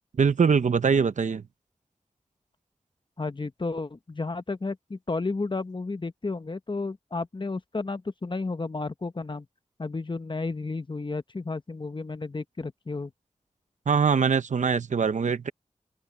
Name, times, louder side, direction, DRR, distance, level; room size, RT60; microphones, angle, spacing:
voice 1, 0.2-1.4 13.9-15.5, right 6 dB, 80° right, 0.9 m, -23 dB
voice 2, 3.2-9.5 9.8-13.1, left 3 dB, 40° left, 1.1 m, -32 dB
open air
cardioid pair, 55°, 12 cm